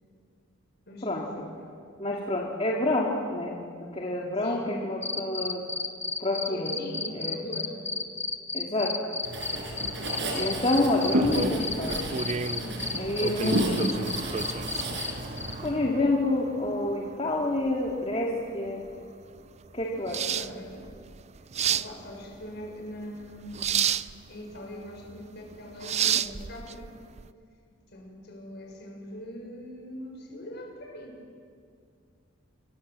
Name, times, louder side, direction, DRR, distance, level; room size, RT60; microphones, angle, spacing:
voice 1, 0.9-1.6 4.4-4.8 6.5-7.9 12.6-13.0 20.1-20.9 21.7-23.7 24.3-27.0 27.9-31.2, equal, 60° left, 1 dB, 6.7 m, -41 dB
voice 2, 2.0-5.6 6.2-6.7 7.1-7.4 8.5-8.9 10.3-12.1 13.0-13.7 15.6-18.8 19.7-20.2, left 2 dB, 30° left, -2 dB, 2.4 m, -28 dB
sound 1, 5.0-15.1 15.4-15.5, left 3 dB, 15° left, 1.4 m, -32 dB
Writing, 9.2-15.7, equal, 65° right, 6.4 m, -31 dB
sound 2, 11.1-27.3, right 7 dB, 35° right, 0.5 m, -33 dB
27.0 x 23.5 x 7.6 m, 2.3 s
head